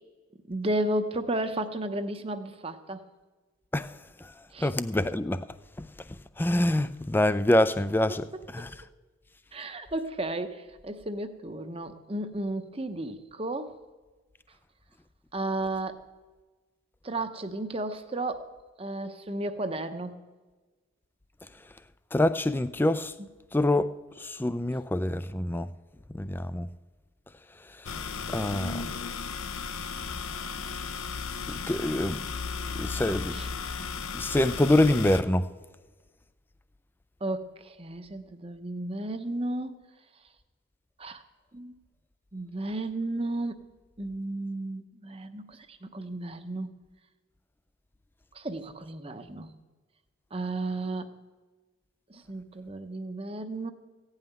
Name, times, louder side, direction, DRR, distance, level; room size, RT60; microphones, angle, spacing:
voice 1, 0.5-3.0 4.5-4.7 8.1-8.2 8.6-8.7 9.5-13.8 15.3-16.0 17.0-18.5 18.8-20.2 23.2-23.3 33.3-33.5 37.2-39.8 41.0-41.2 41.5-41.8 42.3-43.6 44.0-46.7 48.3-49.5 50.3-51.2 52.1-53.7, right 1 dB, 25° right, 0.8 m, -33 dB
voice 2, 4.6-5.5 5.8-5.9 6.4-8.3 8.5-8.7 22.1-23.1 23.5-23.9 24.2-25.7 26.1-26.7 27.9-28.0 28.3-28.8 31.5-32.2 32.8-33.4 34.1-35.4, left 1 dB, 10° left, 0.3 m, -25 dB
sound 1, 27.8-35.2, left 5 dB, 90° left, 0.8 m, -35 dB
16.0 x 5.7 x 9.3 m
head